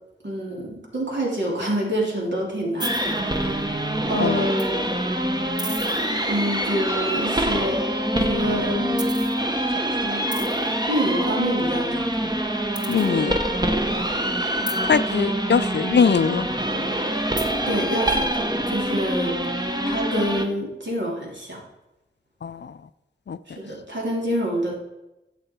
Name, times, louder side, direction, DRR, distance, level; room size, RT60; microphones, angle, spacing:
voice 1, 0.2-3.7 4.1-4.7 6.3-7.9 8.1-9.1 9.7-10.3 10.6-12.3 17.7-19.4 19.8-21.6 23.5-24.7, equal, 60° right, -3 dB, 3.1 m, -27 dB
sound 1, 2.8-20.5, right 1 dB, 20° right, 1.0 m, -25 dB
voice 2, 12.9-13.4 14.9-16.5 22.4-22.7 23.3-23.4, left 6 dB, 60° left, 15 dB, 0.4 m, -21 dB
11.0 x 7.8 x 4.5 m, 0.96 s
wide cardioid pair, 80°, 21 cm